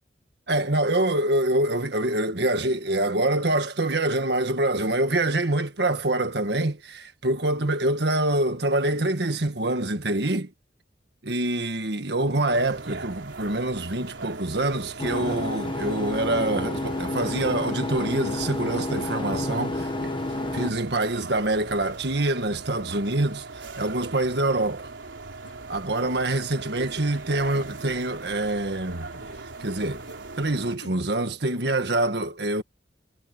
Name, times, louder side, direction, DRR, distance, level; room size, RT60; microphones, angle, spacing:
voice 1, 0.5-10.5 11.2-20.1 20.5-24.9 25.7-29.1 29.6-30.0 30.4-32.6, right 2 dB, 65° right, 1.7 m, -25 dB
sound 1, 12.5-30.8, right 3 dB, 85° right, 3.9 m, -40 dB
sound 2, 15.0-20.7, left 2 dB, 25° left, 1.3 m, -30 dB
sound 3, 25.4-25.5 26.0-26.3 26.8-26.9 27.5-27.9 28.4-28.5 29.1-29.5 30.0-30.2 30.8-31.2, left 1 dB, 85° left, 7.8 m, -49 dB
head